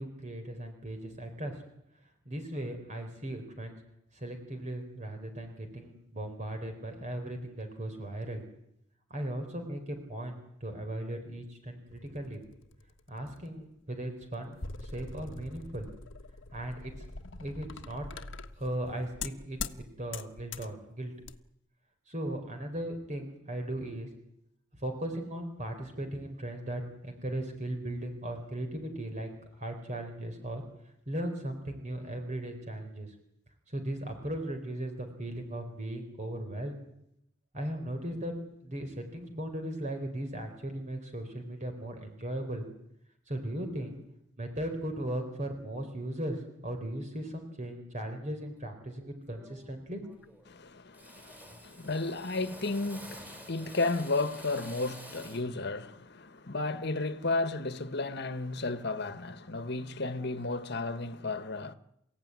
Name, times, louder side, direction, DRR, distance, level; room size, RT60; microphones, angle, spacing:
voice 1, 0.0-1.6 2.3-3.8 4.1-8.4 9.1-12.4 13.1-15.9 16.5-16.9 17.4-18.1 18.6-21.1 22.1-24.1 24.7-30.6 31.1-33.1 33.7-36.8 37.5-38.3 38.6-42.7 43.3-44.0 44.4-50.0, right 1 dB, 40° right, 4.1 m, -37 dB
sound 1, 11.9-13.5 14.2-19.8 20.1-20.7 21.2-21.4, left 4 dB, 80° left, 1.4 m, -43 dB
Drill, 48.6-48.8 49.3-49.8 50.0-50.6 50.9-55.5, equal, 10° right, 4.8 m, -49 dB
voice 2, 50.5-61.7, left 3 dB, 60° left, 1.6 m, -33 dB
29.0 x 16.5 x 9.8 m
head